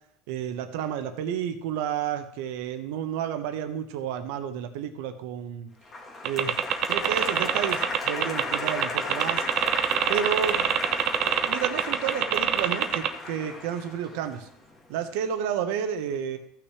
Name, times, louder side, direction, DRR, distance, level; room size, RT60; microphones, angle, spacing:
voice 1, 0.3-5.7 6.2-6.6 6.9-9.5 10.1-10.7 11.4-14.5 14.9-16.4, right 8 dB, 75° right, 7 dB, 1.2 m, -31 dB
Applause, 5.9-14.9, left 2 dB, 25° left, 1.6 m, -35 dB
sound 1, 6.3-13.1, right 11 dB, 45° right, 0.6 m, -24 dB
15.0 x 5.9 x 3.3 m, 0.73 s
cardioid pair, 145°, 0 cm